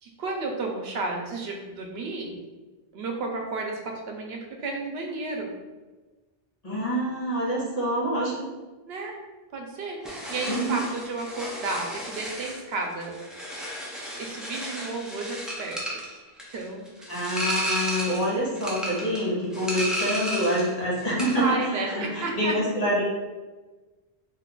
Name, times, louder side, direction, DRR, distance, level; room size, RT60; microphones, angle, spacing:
voice 1, 0.0-2.4 2.9-5.5 8.9-9.2 9.5-13.2 14.2-16.0 16.5-17.1 21.4-22.5, right 3 dB, 80° right, 1 dB, 0.8 m, -32 dB
voice 2, 6.6-8.5 10.5-10.8 17.1-23.0, equal, 40° left, -7 dB, 1.1 m, -26 dB
sound 1, 10.0-20.7 21.0-21.5, equal, ahead, 0.4 m, -33 dB
2.6 x 2.3 x 3.6 m, 1.2 s
omnidirectional pair, 1.0 m